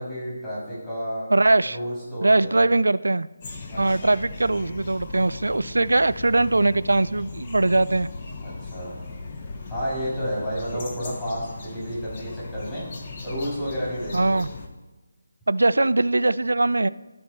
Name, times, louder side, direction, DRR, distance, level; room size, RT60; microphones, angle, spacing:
voice 1, 0.0-1.3 1.7-2.6 3.7-4.1 8.4-9.0 9.7-12.8 13.2-14.4, equal, 15° left, -10 dB, 3.0 m, -31 dB
voice 2, 1.3-1.8 2.2-3.3 3.8-8.1 14.1-14.5 15.5-16.9, right 2 dB, 90° right, 17 dB, 0.3 m, -21 dB
sound 1, 3.4-14.7, left 3 dB, 35° left, 0.9 m, -38 dB
12.5 x 4.2 x 4.3 m, 1.1 s
figure-of-eight pair, 165°, 0 cm